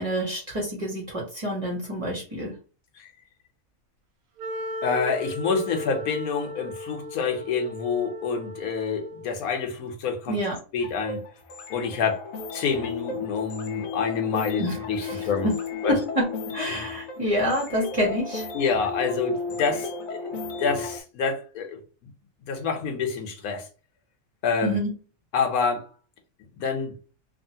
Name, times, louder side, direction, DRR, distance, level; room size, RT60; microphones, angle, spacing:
voice 1, 0.0-2.5 10.3-10.6 14.6-14.8 15.0-15.6 15.9-18.5 24.6-24.9, equal, 30° right, 0.9 m, -27 dB
Wind instrument woodwind instrument, 4.4-9.5, left 2 dB, 70° right, 0.9 m, -36 dB
voice 2, 4.8-10.4 10.7-11.2 11.7-12.2 12.5-15.5 15.8-16.0 18.5-20.3 20.6-22.1 22.4-23.7 24.4-24.8 25.3-25.9 26.5-26.9, left 5 dB, 85° left, 1.2 m, -27 dB
sound 1, 10.8-21.0, left 4 dB, 70° left, 0.9 m, -34 dB
3.0 x 2.4 x 2.7 m
omnidirectional pair, 1.5 m